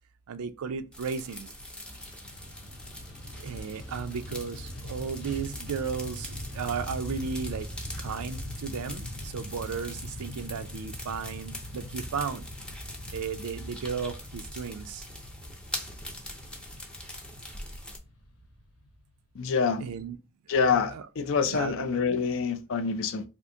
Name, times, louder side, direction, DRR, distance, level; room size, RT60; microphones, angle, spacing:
voice 1, 0.3-1.5 3.3-7.7 8.0-12.4 13.1-15.1 19.8-20.2 20.9-21.0 21.5-21.9, right 6 dB, 90° right, 0.4 m, -35 dB
sound 1, 0.9-18.0, left 1 dB, 5° left, 0.5 m, -43 dB
Fixed-wing aircraft airplane, 1.7-19.2, left 1 dB, 80° left, 0.9 m, -42 dB
voice 2, 19.4-19.8 20.5-23.2, left 5 dB, 60° left, 0.4 m, -26 dB
3.5 x 2.5 x 2.6 m
head